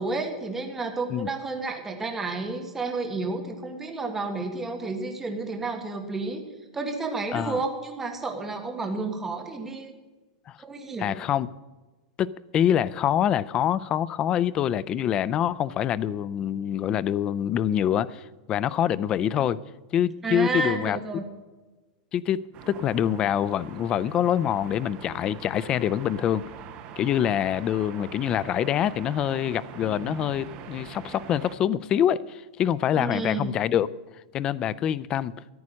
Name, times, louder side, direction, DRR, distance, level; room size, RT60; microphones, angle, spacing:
voice 1, 0.0-6.4 6.7-9.9 10.6-11.2 19.4-19.5 20.2-21.2 32.9-33.5, right 3 dB, 10° right, 4 dB, 1.5 m, -31 dB
voice 2, 11.0-11.5 12.2-19.6 19.9-21.0 22.1-26.4 27.0-33.9 34.3-35.3, left 10 dB, 20° left, 18 dB, 0.4 m, -25 dB
sound 1, 22.5-31.6, right 8 dB, 30° right, 1.1 m, -43 dB
14.0 x 9.7 x 6.3 m, 1.2 s
supercardioid pair, 170°, 4 cm